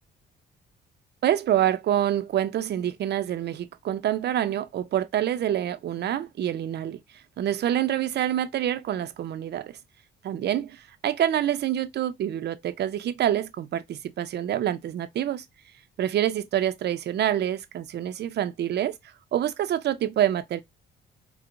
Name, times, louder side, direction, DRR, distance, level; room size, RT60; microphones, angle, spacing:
voice 1, 1.2-7.0 7.4-9.8 10.2-15.4 16.0-18.9 19.3-20.6, right 11 dB, 60° right, 0.5 m, -26 dB
4.5 x 2.1 x 2.4 m
cardioid pair, 90°, 20 cm